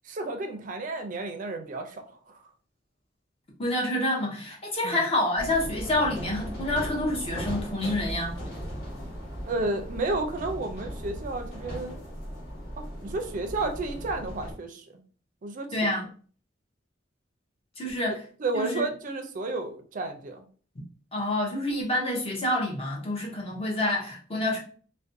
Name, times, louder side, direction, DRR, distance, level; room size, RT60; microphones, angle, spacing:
voice 1, 0.0-2.4 4.8-5.0 9.5-12.0 12.8-15.0 15.4-15.8 18.4-20.5, right 2 dB, 45° right, 0.4 m, -32 dB
voice 2, 3.6-8.4 15.7-16.1 17.8-18.2 18.5-18.8 21.1-24.6, left 1 dB, 30° left, 0.6 m, -28 dB
sound 1, 5.4-14.5, equal, 50° left, 1.3 m, -37 dB
2.5 x 2.1 x 2.5 m
head